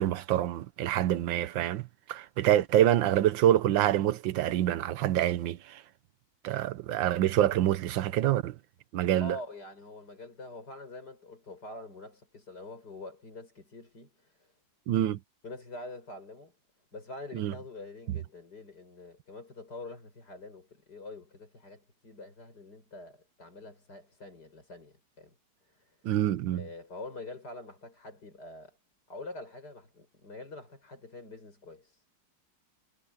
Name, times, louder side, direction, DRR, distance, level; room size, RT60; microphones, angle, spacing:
voice 1, 0.0-5.8 6.4-8.5 8.9-9.4 14.9-15.2 17.3-17.5 26.0-26.6, right 12 dB, 85° right, 1.6 m, -26 dB
voice 2, 9.2-14.5 15.4-16.5 16.9-25.3 25.6-26.0 26.5-28.8 29.1-32.0, left 2 dB, 60° left, 7.2 m, -45 dB
omnidirectional pair, 2.0 m